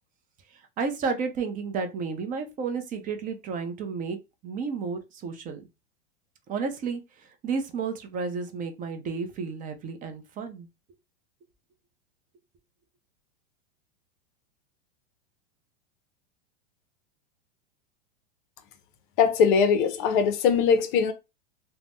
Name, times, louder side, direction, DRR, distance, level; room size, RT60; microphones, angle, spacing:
voice 1, 0.5-4.2 4.4-5.6 6.5-10.7, right 5 dB, 25° right, 0.5 m, -32 dB
voice 2, 19.2-21.1, left 6 dB, 50° left, 0.6 m, -21 dB
2.5 x 2.1 x 3.4 m
hypercardioid pair, 125°, 34 cm